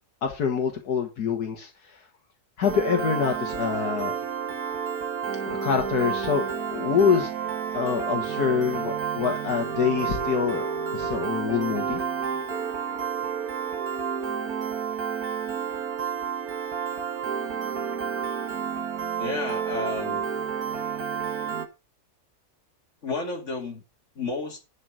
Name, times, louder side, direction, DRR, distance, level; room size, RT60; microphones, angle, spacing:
voice 1, 0.2-2.0 2.6-4.2 5.4-6.4 6.7-7.3 7.7-12.0, left 6 dB, 75° left, 2.0 m, -26 dB
Piano, 2.6-21.7, right 7 dB, 70° right, 1.9 m, -30 dB
voice 2, 19.2-20.2 23.0-23.8 24.2-24.6, left 3 dB, 50° left, 2.9 m, -31 dB
11.5 x 5.3 x 6.3 m
omnidirectional pair, 1.7 m